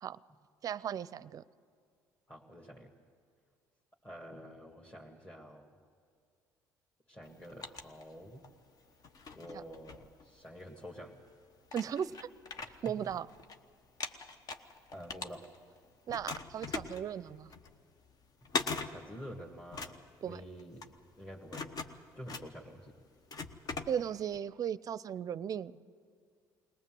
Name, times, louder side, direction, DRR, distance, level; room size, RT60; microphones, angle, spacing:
voice 1, 0.6-1.4 9.5-9.6 11.7-12.3 12.8-13.3 16.1-17.5 20.2-20.4 23.9-25.7, right 8 dB, 45° right, 18 dB, 0.5 m, -36 dB
voice 2, 2.3-2.9 4.0-5.6 7.1-8.5 9.3-11.2 12.9-13.0 14.9-15.4 18.8-20.9 21.2-21.7 22.1-22.9, equal, 15° left, -1 dB, 2.0 m, -48 dB
sound 1, 7.2-8.6 9.0-10.7 11.3-11.4 11.7-13.6 13.8-15.8 16.1-24.4, left 4 dB, 50° left, 1.1 m, -41 dB
21.0 x 18.5 x 7.7 m, 2.2 s
supercardioid pair, 75°, 8 cm